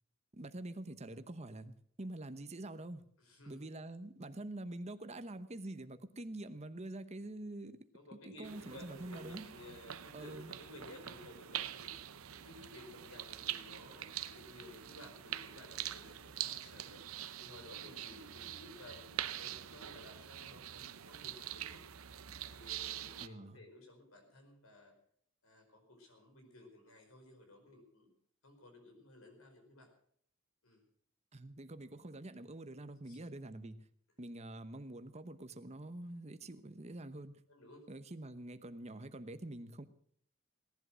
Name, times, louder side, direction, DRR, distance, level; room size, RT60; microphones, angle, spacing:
voice 1, 0.3-3.0 3.5-7.8 8.4-9.5 10.1-10.5 23.2-23.6 31.3-33.8 34.2-37.4 37.9-39.9, right 1 dB, 30° right, 10 dB, 1.0 m, -46 dB
voice 2, 3.2-3.6 7.9-11.9 12.3-17.0 17.4-21.8 22.5-24.9 25.4-28.1 28.4-29.9 30.6-30.8 33.0-33.2 37.5-37.9, left 1 dB, 80° left, 4 dB, 4.8 m, -56 dB
sound 1, 8.4-23.3, right 11 dB, 80° right, 0.7 m, -45 dB
18.0 x 11.0 x 6.3 m, 0.64 s
head